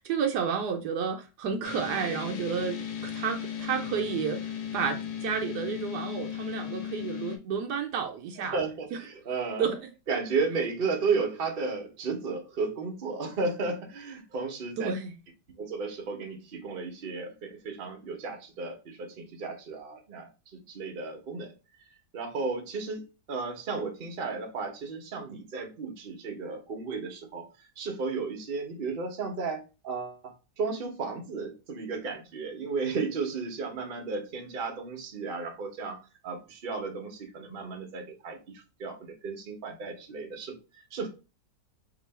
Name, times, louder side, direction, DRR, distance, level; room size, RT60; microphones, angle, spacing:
voice 1, 0.0-8.6 9.6-9.8 14.8-15.1, right 6 dB, 75° right, 1.1 m, -31 dB
sound 1, 1.6-7.4, left 8 dB, 80° left, 1.3 m, -36 dB
voice 2, 8.4-9.7 10.1-14.9 15.6-20.3 20.7-21.5 22.1-27.5 27.8-36.0 36.2-41.1, right 4 dB, 50° right, 0.7 m, -34 dB
3.0 x 2.7 x 4.0 m
omnidirectional pair, 1.9 m